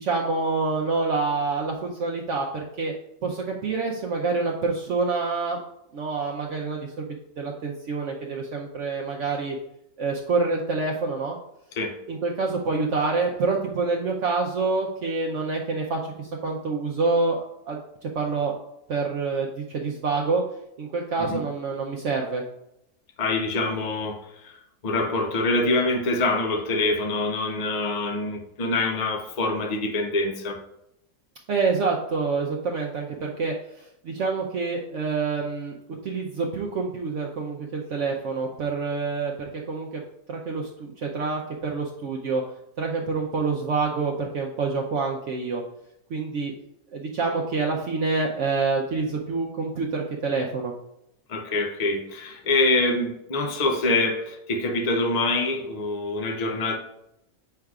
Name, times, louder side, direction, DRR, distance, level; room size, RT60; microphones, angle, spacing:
voice 1, 0.0-2.9 3.2-5.6 5.9-7.1 7.4-9.6 10.0-11.4 12.1-17.4 17.7-18.6 18.9-20.4 20.8-22.4 31.5-39.3 39.7-40.0 40.3-42.4 42.8-45.6 46.1-46.5 46.9-50.7, right 4 dB, 60° right, 0 dB, 0.8 m, -27 dB
voice 2, 23.2-30.6 51.3-56.8, left 2 dB, 70° left, 3 dB, 0.3 m, -25 dB
7.6 x 5.7 x 2.3 m, 0.82 s
omnidirectional pair, 1.6 m